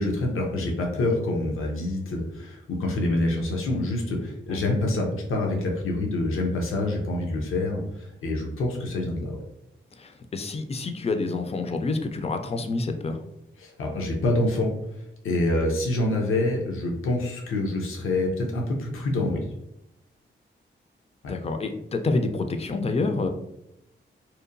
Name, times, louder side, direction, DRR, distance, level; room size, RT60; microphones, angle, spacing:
voice 1, 0.0-9.4 13.6-14.7 15.2-19.4, left 2 dB, 85° left, 0 dB, 0.6 m, -26 dB
voice 2, 10.0-13.2 21.3-23.3, left 3 dB, 30° left, 6 dB, 0.3 m, -28 dB
2.8 x 2.1 x 2.5 m, 0.84 s
cardioid pair, 80°, 21 cm